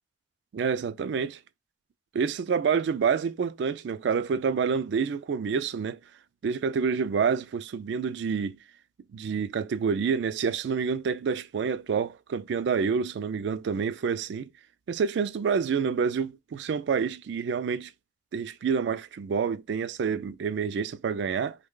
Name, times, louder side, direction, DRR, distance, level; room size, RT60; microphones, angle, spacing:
voice 1, 0.5-1.4 2.1-6.0 6.4-8.6 9.1-14.5 14.9-17.9 18.3-21.6, right 6 dB, 65° right, 0.3 m, -28 dB
3.2 x 2.1 x 3.6 m
head